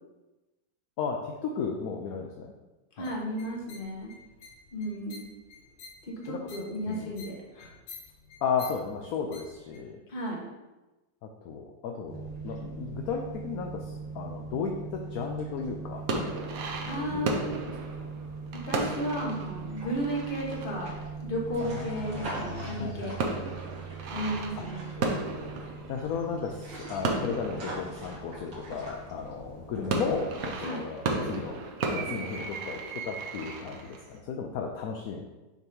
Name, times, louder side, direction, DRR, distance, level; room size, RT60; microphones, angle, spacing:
voice 1, 1.0-2.5 3.0-3.1 6.3-6.4 6.9-7.1 8.4-10.0 11.4-16.0 16.8-17.4 21.6-23.3 24.6-24.7 25.9-31.6 31.9-35.2, left 6 dB, 70° left, 2 dB, 0.9 m, -34 dB
sound 1, 3.0-9.8, left 4 dB, 85° left, 1.5 m, -50 dB
voice 2, 3.0-4.1 4.7-5.3 6.0-7.7 10.1-10.4 16.8-17.5 18.5-20.9 21.2-23.2 24.1-25.1 30.6-30.8, equal, 30° left, -2 dB, 1.3 m, -34 dB
sound 2, 12.1-30.5, right 4 dB, 80° right, 2.4 m, -41 dB
sound 3, 16.0-22.2 22.4-29.1 29.6-34.2, right 3 dB, 60° right, 1.1 m, -35 dB
6.6 x 3.0 x 5.4 m, 1.1 s
omnidirectional pair, 1.9 m